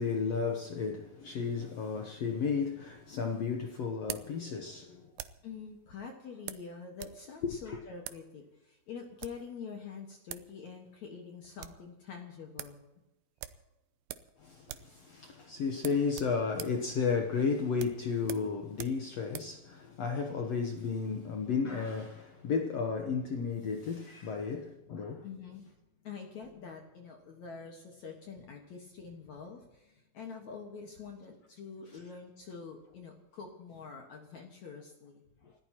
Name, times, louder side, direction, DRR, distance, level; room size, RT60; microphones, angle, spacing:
voice 1, 0.0-5.1 7.4-7.8 14.4-25.2, left 5 dB, 75° left, 1.5 m, -33 dB
sound 1, 2.6-5.5 6.5-7.2 7.5-7.6 8.0-8.3 9.0-9.5 10.0-10.1 10.3-10.5 10.8-10.9 11.3-11.9 12.2-12.3 12.6-12.8 13.4-14.4 14.6-15.0 15.2-15.4 15.8-19.6, right 13 dB, 75° right, 2.4 m, -45 dB
voice 2, 5.4-12.8 25.2-25.7 26.0-35.2, left 5 dB, 60° left, 2.5 m, -46 dB
29.5 x 14.5 x 2.9 m
omnidirectional pair, 4.3 m